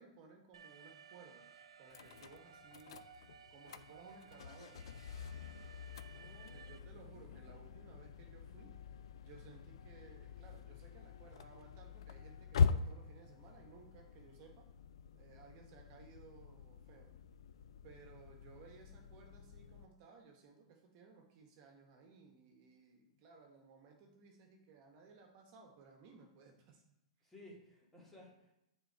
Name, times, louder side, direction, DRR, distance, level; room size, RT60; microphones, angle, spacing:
voice 1, 0.0-4.9 6.5-8.8 9.2-14.7 15.2-17.1 17.8-26.8 27.2-27.3, right 5 dB, 45° right, 3 dB, 1.0 m, -60 dB
Alarm, 0.5-6.8, right 7 dB, 90° right, 0.5 m, -58 dB
sound 1, 1.9-19.9, left 6 dB, 70° left, 0.4 m, -43 dB
voice 2, 6.1-6.8 7.3-7.9 23.1-23.2 27.2-28.5, left 1 dB, 10° left, -4 dB, 2.1 m, -59 dB
6.8 x 3.8 x 4.5 m, 0.86 s
hypercardioid pair, 125°, 3 cm